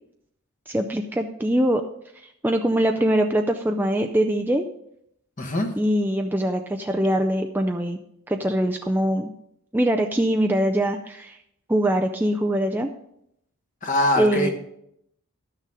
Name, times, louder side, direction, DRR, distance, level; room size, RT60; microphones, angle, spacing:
voice 1, 0.7-1.8 2.2-4.7 5.8-8.0 8.3-9.3 9.7-11.4 11.7-12.9 14.2-14.5, right 1 dB, 10° right, 3 dB, 0.3 m, -23 dB
voice 2, 5.4-5.7 13.8-14.5, left 1 dB, 35° left, 5 dB, 1.2 m, -22 dB
12.0 x 6.6 x 4.9 m, 0.75 s
head